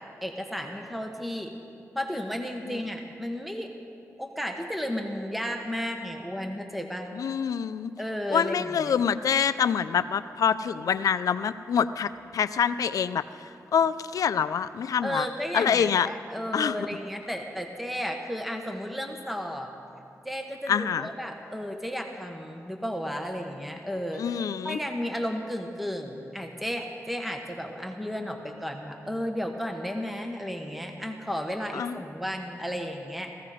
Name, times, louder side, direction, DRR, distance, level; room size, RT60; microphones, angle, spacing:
voice 1, 0.2-1.5 1.9-3.7 4.2-7.1 8.0-8.9 15.0-19.7 20.2-24.2 24.6-33.3, equal, ahead, 3 dB, 1.1 m, -33 dB
voice 2, 7.2-7.9 8.3-13.3 13.7-15.3 15.5-16.1 16.5-16.8 20.7-21.1 24.2-24.8 31.7-32.0, left 7 dB, 85° left, 13 dB, 0.5 m, -26 dB
17.0 x 15.5 x 5.0 m, 2.6 s
wide cardioid pair, 90°, 6 cm